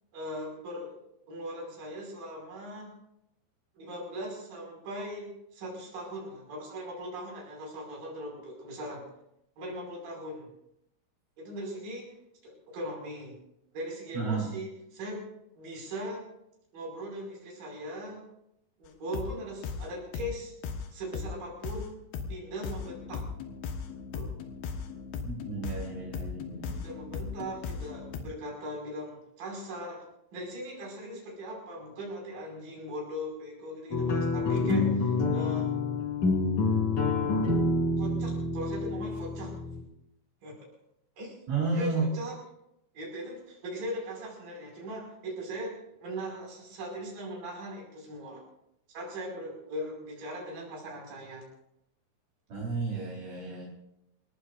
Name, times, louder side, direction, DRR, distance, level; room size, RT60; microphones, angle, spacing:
voice 1, 0.1-1.0 1.3-2.9 3.8-9.0 9.6-10.5 11.4-12.1 12.4-13.4 13.7-15.2 15.6-16.3 16.7-18.2 18.8-20.5 20.9-22.0 22.3-23.3 24.1-24.3 26.7-30.0 30.3-35.7 38.0-39.5 40.4-40.7 41.2-41.4 41.7-42.3 42.9-48.4 48.9-51.5, equal, 45° right, -2 dB, 7.0 m, -39 dB
voice 2, 14.1-14.5 25.2-26.8 41.5-42.1 52.5-53.6, right 4 dB, 70° right, -4 dB, 6.0 m, -32 dB
sound 1, 19.1-19.4 19.6-19.9 20.1-20.4 20.6-20.9 21.1-21.4 21.6-21.9 22.1-22.4 22.6-28.2, left 5 dB, 65° left, 3.0 m, -37 dB
sound 2, 33.9-39.8, left 3 dB, 45° left, 2.8 m, -27 dB
28.5 x 15.5 x 2.6 m, 0.80 s
omnidirectional pair, 5.8 m